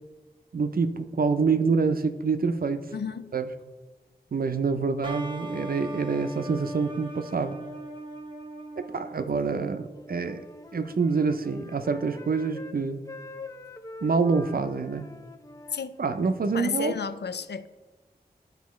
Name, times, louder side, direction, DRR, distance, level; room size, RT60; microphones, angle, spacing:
voice 1, 0.5-2.9 3.3-3.5 4.3-7.6 8.9-10.5 10.7-13.0 14.0-15.1 16.0-16.9, right 4 dB, 60° right, 9 dB, 0.5 m, -26 dB
voice 2, 2.9-3.3 15.7-16.0 16.5-17.7, left 6 dB, 80° left, 12 dB, 0.4 m, -32 dB
sound 1, 5.0-10.5, right 1 dB, 30° right, 0.8 m, -40 dB
Wind instrument woodwind instrument, 9.9-12.8 13.1-16.4, left 2 dB, 20° left, 0.5 m, -45 dB
11.5 x 4.8 x 3.1 m, 1.3 s
wide cardioid pair, 55°, 17 cm